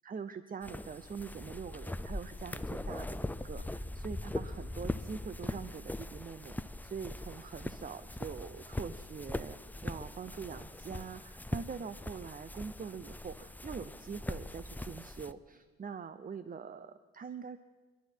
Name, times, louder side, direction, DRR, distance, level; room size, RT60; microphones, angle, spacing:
voice 1, 0.0-17.6, right 6 dB, 30° right, 12 dB, 0.7 m, -44 dB
sound 1, 0.6-15.3, left 1 dB, 5° left, 0.5 m, -41 dB
27.0 x 11.5 x 4.6 m, 1.3 s
cardioid pair, 90°, 30 cm